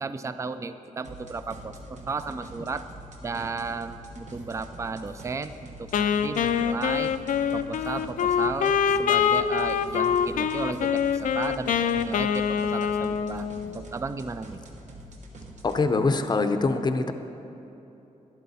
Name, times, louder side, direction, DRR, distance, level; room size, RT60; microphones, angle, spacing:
voice 1, 0.0-2.9 3.2-7.1 7.5-14.6, right 4 dB, 20° right, 11 dB, 0.3 m, -34 dB
sound 1, 1.0-15.8, right 1 dB, 60° right, 1.2 m, -45 dB
Wind instrument woodwind instrument, 5.9-13.8, left 7 dB, 85° left, 0.4 m, -25 dB
voice 2, 15.6-17.1, left 3 dB, 35° left, 8 dB, 0.6 m, -24 dB
12.0 x 11.0 x 4.2 m, 3.0 s
wide cardioid pair, 125°, 13 cm